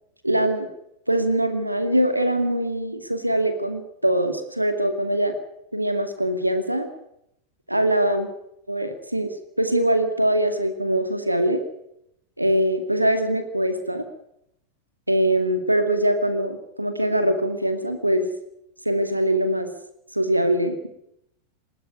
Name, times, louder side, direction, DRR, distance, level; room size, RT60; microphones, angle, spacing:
voice 1, 0.2-0.7 1.1-5.3 5.7-6.9 7.7-8.3 8.7-11.6 12.4-14.1 15.1-18.3 18.9-19.7 20.1-20.9, right 1 dB, 85° right, 8 dB, 2.2 m, -22 dB
20.5 x 15.5 x 9.7 m, 0.77 s
figure-of-eight pair, 90°, 0 cm